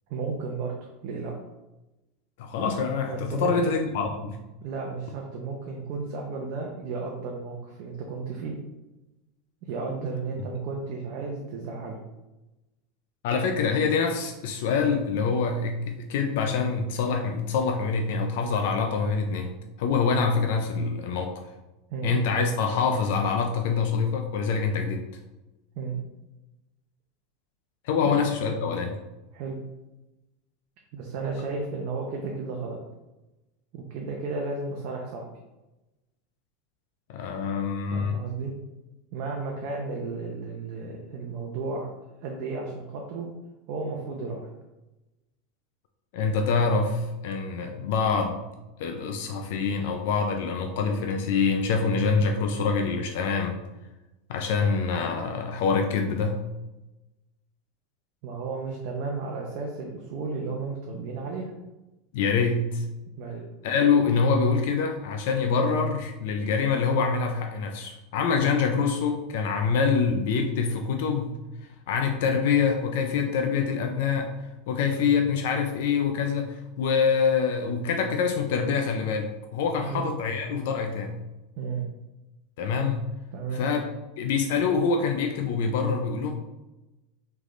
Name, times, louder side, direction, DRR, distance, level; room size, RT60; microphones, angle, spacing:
voice 1, 0.1-1.3 3.1-3.7 4.6-8.5 9.6-12.0 21.9-22.2 25.8-26.0 28.0-28.1 29.3-29.6 30.9-32.8 33.7-35.3 37.9-38.5 39.1-41.9 42.2-43.3 43.7-44.4 58.2-61.5 63.2-63.4 79.8-80.0 81.6-81.9 83.3-83.6, right 4 dB, 50° right, -1 dB, 0.6 m, -33 dB
voice 2, 2.4-4.4 13.2-19.5 19.8-21.3 22.0-25.0 27.8-29.0 37.1-38.2 46.1-48.4 48.8-53.6 54.3-56.4 62.1-62.8 63.6-71.4 71.9-74.3 74.7-81.1 82.6-83.1 83.5-83.9 84.2-86.3, left 5 dB, 70° left, 4 dB, 0.5 m, -25 dB
3.8 x 3.4 x 3.2 m, 1.0 s
supercardioid pair, 155°, 0 cm